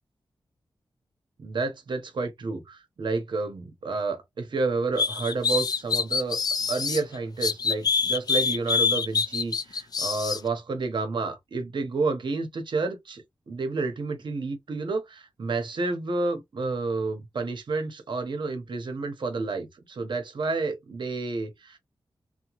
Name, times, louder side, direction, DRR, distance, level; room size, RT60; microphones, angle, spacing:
voice 1, 1.4-6.4 6.7-21.8, right 3 dB, 65° right, 0.8 m, -30 dB
sound 1, 5.0-7.0 7.4-10.4, left 5 dB, 50° left, 0.4 m, -25 dB
2.8 x 2.2 x 2.9 m
wide cardioid pair, 85°, 9 cm